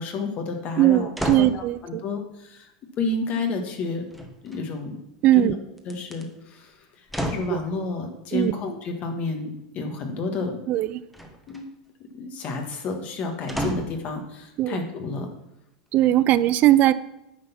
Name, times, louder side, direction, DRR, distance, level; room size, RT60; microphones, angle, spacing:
voice 1, 0.0-1.1 1.4-2.7 3.0-4.1 4.4-5.0 5.3-5.6 5.8-10.7 11.5-11.7 12.0-15.3, left 3 dB, 40° left, 4 dB, 1.5 m, -30 dB
voice 2, 0.8-2.0 5.2-5.5 7.5-7.6 8.3-8.5 10.7-11.0 14.6-14.8 15.9-16.9, right 14 dB, 45° right, 16 dB, 0.4 m, -19 dB
sound 1, 1.2-1.6 4.1-4.8 5.8-6.2 7.1-7.6 11.1-11.7 13.5-14.0 14.7-14.8, equal, ahead, 1.2 m, -31 dB
9.6 x 4.0 x 5.8 m, 0.88 s
hypercardioid pair, 105°, 4 cm